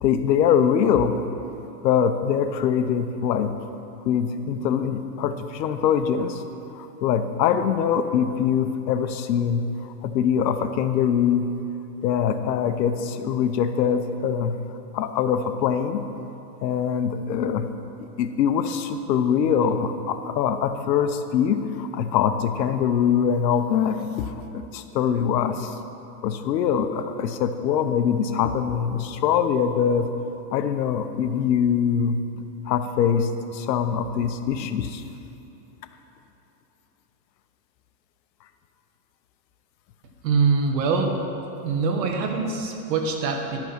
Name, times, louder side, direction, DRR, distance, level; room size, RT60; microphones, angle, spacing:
voice 1, 0.0-1.2 1.8-3.5 4.0-6.4 6.7-9.6 10.0-11.5 12.0-14.6 14.9-16.0 16.6-17.7 18.2-25.8 26.2-30.1 30.5-35.0, left 8 dB, 90° left, 9 dB, 0.9 m, -23 dB
voice 2, 40.2-41.2 41.6-43.6, right 4 dB, 80° right, 3 dB, 1.6 m, -23 dB
11.0 x 6.0 x 5.9 m, 2.9 s
supercardioid pair, 160°, 49 cm